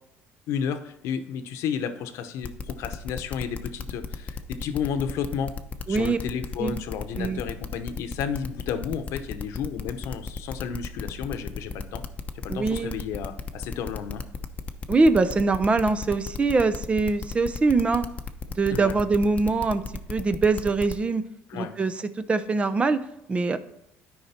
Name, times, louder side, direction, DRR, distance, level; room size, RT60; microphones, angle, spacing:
voice 1, 0.5-5.5 5.9-12.0 12.3-14.2 18.7-19.0 21.5-21.7, left 7 dB, 70° left, 9 dB, 1.0 m, -32 dB
sound 1, 2.4-20.9, left 5 dB, 25° left, 0.8 m, -34 dB
voice 2, 5.9-6.2 6.6-6.8 7.2-7.4 12.5-12.9 14.9-18.0 18.6-19.8 20.1-21.3 21.5-23.6, right 3 dB, 25° right, 12 dB, 0.7 m, -23 dB
12.0 x 5.2 x 4.4 m, 0.78 s
cardioid pair, 110°, 5 cm